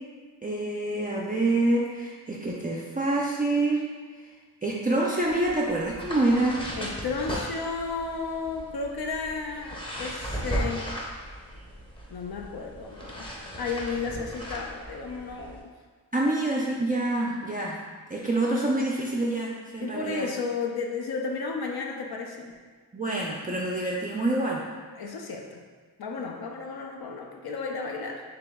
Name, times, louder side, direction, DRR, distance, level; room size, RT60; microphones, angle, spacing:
voice 1, 0.4-3.9 4.6-6.6 16.1-17.8 18.1-20.3 22.9-24.6, right 2 dB, 20° right, -4 dB, 0.3 m, -26 dB
sound 1, 5.2-15.6, equal, 10° left, 0.7 m, -37 dB
voice 2, 6.8-10.9 12.1-15.6 19.8-22.5 25.0-25.6 26.0-28.2, left 4 dB, 60° left, 1 dB, 0.5 m, -33 dB
3.0 x 2.9 x 3.5 m, 1.5 s
cardioid pair, 70°, 43 cm